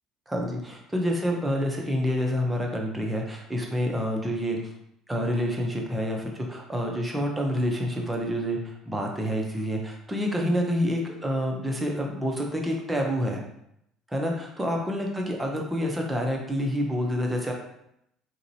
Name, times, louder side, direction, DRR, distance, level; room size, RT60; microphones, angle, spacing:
voice 1, 0.3-4.6 5.1-13.4 14.1-17.5, equal, 10° right, 0 dB, 0.7 m, -28 dB
3.8 x 2.9 x 2.7 m, 0.77 s
cardioid pair, 115°, 0 cm